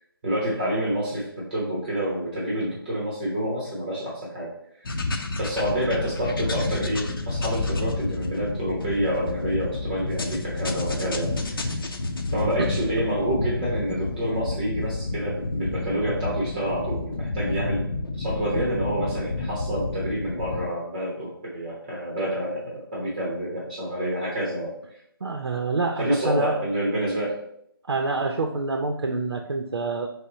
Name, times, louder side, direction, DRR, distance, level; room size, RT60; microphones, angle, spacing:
voice 1, 0.2-4.5 5.4-11.7 12.3-17.9 18.2-24.7 26.0-27.4, right 1 dB, 20° right, -5 dB, 0.9 m, -28 dB
sound 1, 4.9-20.7, left 2 dB, 60° left, 0.6 m, -30 dB
voice 2, 25.2-26.6 27.9-30.1, right 3 dB, 85° right, 3 dB, 0.5 m, -27 dB
5.3 x 2.1 x 4.0 m, 0.75 s
figure-of-eight pair, 165°, 13 cm